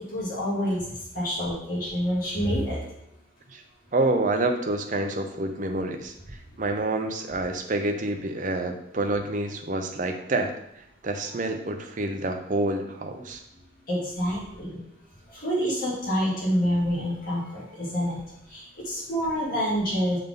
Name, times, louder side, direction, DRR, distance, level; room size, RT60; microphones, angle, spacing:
voice 1, 0.0-2.9 13.9-14.8 15.3-18.2 18.5-20.2, equal, 45° left, -7 dB, 2.2 m, -27 dB
voice 2, 3.9-10.5 11.0-13.4, right 2 dB, 40° right, 5 dB, 0.7 m, -28 dB
6.7 x 3.8 x 3.7 m, 0.80 s
head